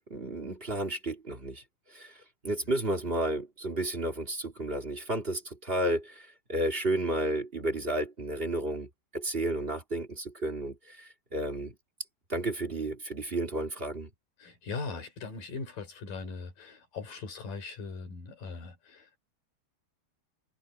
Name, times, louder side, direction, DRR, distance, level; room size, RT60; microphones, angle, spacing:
voice 1, 0.0-1.6 1.9-11.7 12.3-14.1, right 1 dB, 15° right, 2.2 m, -32 dB
voice 2, 14.4-19.1, left 4 dB, 55° left, 6.0 m, -40 dB
omnidirectional pair, 4.7 m